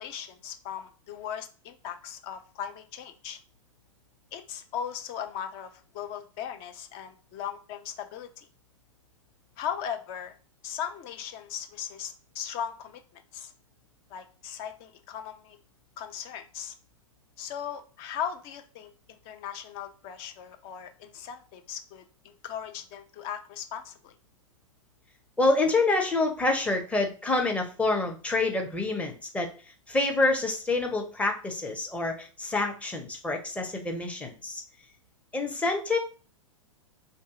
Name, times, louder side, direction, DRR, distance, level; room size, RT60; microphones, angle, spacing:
voice 1, 0.0-3.4 4.3-8.5 9.6-10.3 10.6-13.5 14.1-15.6 16.0-16.7 17.4-24.1, left 8 dB, 35° left, 7 dB, 0.6 m, -38 dB
voice 2, 25.4-29.5 29.9-34.6 35.3-36.0, left 2 dB, 5° left, 2 dB, 0.8 m, -27 dB
3.3 x 2.7 x 3.6 m, 0.37 s
figure-of-eight pair, 105°, 17 cm